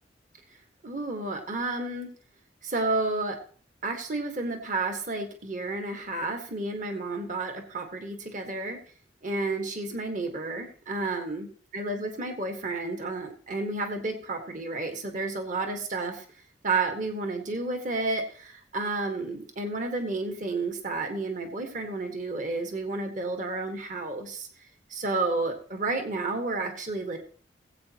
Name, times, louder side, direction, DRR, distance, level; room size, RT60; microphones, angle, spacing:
voice 1, 0.8-2.1 2.6-3.4 3.8-8.8 9.2-11.5 11.7-16.2 16.6-24.5 24.9-27.2, right 3 dB, 45° right, 4 dB, 1.5 m, -31 dB
18.5 x 8.3 x 2.9 m, 0.43 s
head